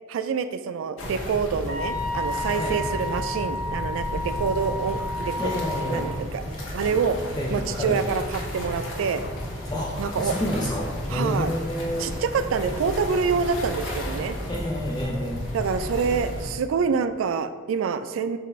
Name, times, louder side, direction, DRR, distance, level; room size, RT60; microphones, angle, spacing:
voice 1, 0.1-6.4 6.7-7.2 7.5-9.2 10.0-10.4 11.1-11.5 12.0-14.4 15.5-18.4, right 6 dB, 90° right, 10 dB, 0.3 m, -26 dB
sound 1, 1.0-16.5, left 1 dB, 75° left, 0.9 m, -33 dB
Wind instrument woodwind instrument, 1.7-6.1, left 2 dB, 40° right, 1.2 m, -31 dB
voice 2, 5.4-6.1 6.5-6.6 7.3-8.0 9.7-12.1 14.5-15.5, left 1 dB, 20° left, -4 dB, 0.5 m, -29 dB
6.7 x 2.5 x 3.1 m, 1.5 s
head